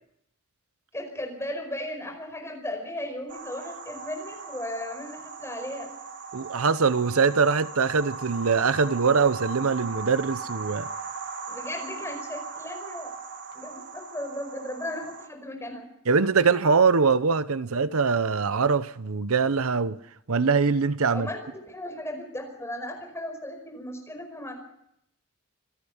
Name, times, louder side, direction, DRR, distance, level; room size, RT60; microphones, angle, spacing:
voice 1, 0.9-5.9 11.5-13.1 13.5-15.8 21.1-24.5, left 1 dB, 10° left, 5.1 m, -36 dB
sound 1, 3.3-15.3, right 4 dB, 55° right, 1.8 m, -39 dB
voice 2, 6.3-10.9 16.1-20.0 20.3-21.3, right 5 dB, 80° right, 0.8 m, -23 dB
26.5 x 13.5 x 7.2 m
head